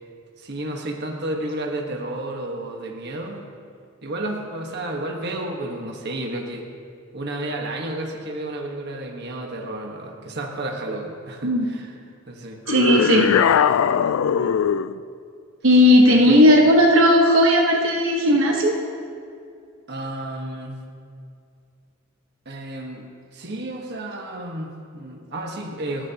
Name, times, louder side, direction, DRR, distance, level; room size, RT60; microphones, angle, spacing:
voice 1, 0.4-3.4 4.0-6.6 7.1-11.9 12.3-12.6 13.2-13.4 14.4-14.6 16.1-16.4 19.9-20.8 22.4-23.1 23.3-26.1, right 1 dB, 55° right, 1 dB, 1.5 m, -31 dB
sound 1, 12.7-15.0, left 7 dB, 80° left, 0.4 m, -20 dB
voice 2, 12.7-13.3 15.6-18.8, left 1 dB, 70° right, 0 dB, 1.4 m, -15 dB
29.5 x 10.5 x 3.0 m, 2.3 s
head